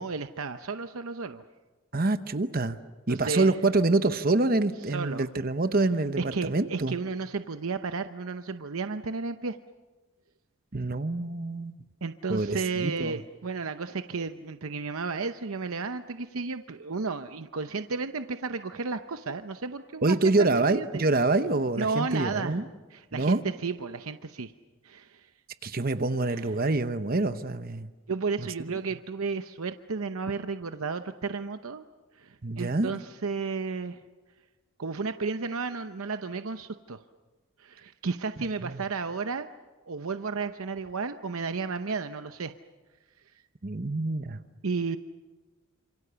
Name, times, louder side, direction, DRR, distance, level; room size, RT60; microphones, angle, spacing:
voice 1, 0.0-1.4 3.1-3.6 4.9-5.3 6.2-9.6 12.0-20.2 20.7-21.0 21.8-22.6 22.9-24.5 24.8-25.3 26.3-26.6 28.1-31.8 32.2-34.0 34.8-37.0 37.6-39.5 39.9-42.5 44.6-45.0, right 4 dB, 75° right, 8 dB, 0.8 m, -33 dB
voice 2, 1.9-2.8 3.1-7.0 10.7-11.8 12.3-13.2 20.0-22.7 23.1-23.4 25.6-27.9 28.4-28.8 32.4-32.9 38.6-38.8 43.6-44.4, right 2 dB, 40° right, 10 dB, 0.9 m, -26 dB
28.5 x 27.0 x 6.9 m, 1.3 s
head